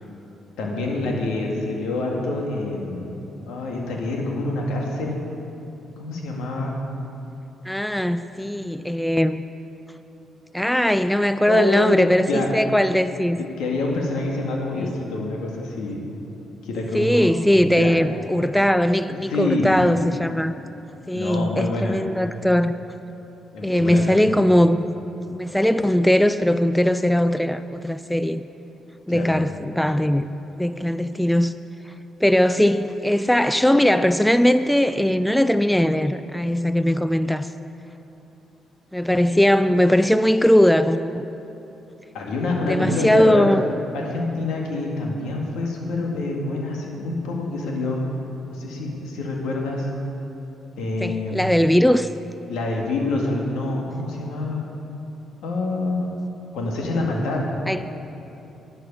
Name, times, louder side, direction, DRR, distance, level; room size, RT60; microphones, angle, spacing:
voice 1, 0.6-5.2 6.0-6.8 11.5-12.5 13.4-16.0 16.6-17.3 17.8-18.0 19.3-19.7 21.1-22.0 23.5-24.3 29.1-29.3 42.1-43.5 43.9-48.0 48.5-49.9 50.8-51.4 52.5-54.7 55.4-56.1 56.5-57.4, left 2 dB, 90° left, -1 dB, 2.1 m, -26 dB
voice 2, 7.7-9.4 10.5-13.4 14.7-15.0 16.9-20.6 21.1-22.7 23.6-24.9 25.3-28.4 29.1-30.3 30.6-31.5 32.2-37.5 38.9-41.3 42.7-43.6 51.0-52.1 57.7-57.8, left 1 dB, 5° left, 12 dB, 0.4 m, -19 dB
12.0 x 10.0 x 5.4 m, 3.0 s
cardioid pair, 90°, 0 cm